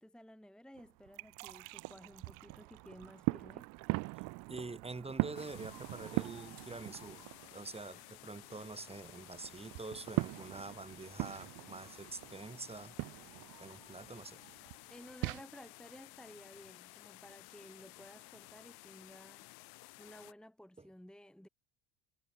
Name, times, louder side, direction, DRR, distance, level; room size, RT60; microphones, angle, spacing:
voice 1, 0.0-3.7 14.9-19.5 20.0-21.5, equal, ahead, 1.6 m, -55 dB
sound 1, 0.7-12.3, right 30 dB, 70° right, 5.3 m, -60 dB
sound 2, 0.8-7.6 7.9-15.4, right 25 dB, 50° right, 0.5 m, -41 dB
voice 2, 4.5-7.2 7.5-13.0 13.6-14.4 20.8-20.9, right 3 dB, 15° right, 2.5 m, -46 dB
sound 3, 5.3-20.3, left 29 dB, 65° left, 2.5 m, -55 dB
hypercardioid pair, 70°, 40 cm